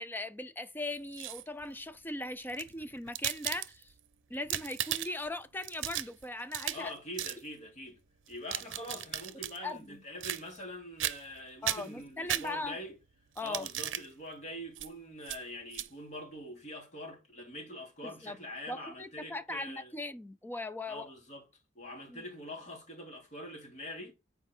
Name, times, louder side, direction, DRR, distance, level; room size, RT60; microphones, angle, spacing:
voice 1, 0.0-3.9 4.3-6.9 9.6-10.0 11.6-12.8 13.4-13.7 18.0-18.4 18.7-21.1 22.1-22.2, left 2 dB, 10° left, 0.6 m, -39 dB
sound 1, 0.9-1.6 2.4-4.0 4.3-5.3 5.6-6.9 7.2-7.4 8.3-9.6 10.2-10.7 11.0-11.4 11.6-12.9 13.4-14.1 14.7-14.9 15.2-15.4 15.7-15.9, right 12 dB, 85° right, 0.6 m, -36 dB
voice 2, 6.7-8.0 8.3-13.0 13.4-19.9 20.8-21.4 21.7-24.1, left 1 dB, 40° left, 2.8 m, -44 dB
8.1 x 4.6 x 4.4 m
head